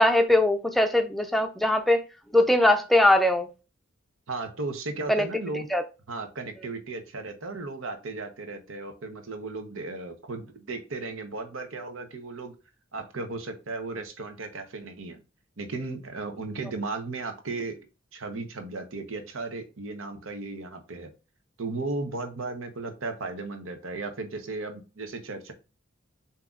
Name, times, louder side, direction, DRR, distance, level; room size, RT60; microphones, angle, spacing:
voice 1, 0.0-2.0 2.3-3.5 5.1-5.3 5.7-5.8, left 1 dB, ahead, 0.4 m, -21 dB
voice 2, 4.3-5.7 6.1-12.5 12.9-15.2 15.6-17.7 18.1-21.1 21.6-25.5, right 3 dB, 80° right, 1.0 m, -35 dB
7.4 x 2.8 x 2.4 m
head